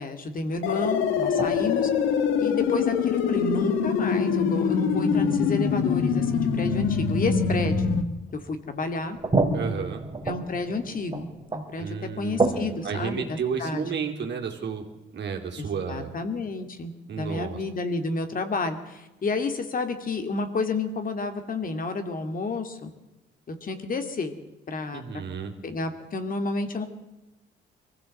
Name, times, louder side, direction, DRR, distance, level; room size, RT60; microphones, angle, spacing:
voice 1, 0.0-1.9 2.4-7.8 8.3-9.2 10.3-11.3 11.5-13.8 15.6-22.9 23.5-24.4 24.7-25.0 25.6-26.9, left 3 dB, 45° left, 7 dB, 2.5 m, -30 dB
sound 1, 0.6-8.0, left 6 dB, 90° left, 1.7 m, -24 dB
sound 2, 1.4-3.3 3.7-3.8 5.7-5.8 6.4-6.5 8.2-8.3 8.8-13.9, right 3 dB, 25° right, 3.0 m, -31 dB
voice 2, 9.5-10.0 11.8-14.9 15.1-16.1 17.1-17.6 24.9-25.5, right 6 dB, 60° right, 2 dB, 3.5 m, -32 dB
22.5 x 15.5 x 7.8 m, 1.0 s
cardioid pair, 90°, 20 cm